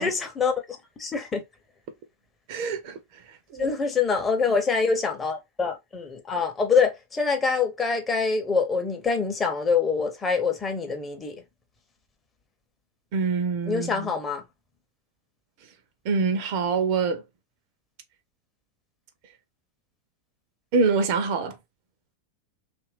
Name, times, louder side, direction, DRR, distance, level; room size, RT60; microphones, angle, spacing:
voice 1, 0.0-1.4 3.6-11.4 13.7-14.4, left 5 dB, 20° left, 0.7 m, -25 dB
voice 2, 2.5-3.0 3.5-3.7 13.1-14.1 16.1-17.2 20.7-21.5, right 5 dB, 45° right, 0.6 m, -25 dB
2.9 x 2.5 x 3.2 m
figure-of-eight pair, 90°, 0 cm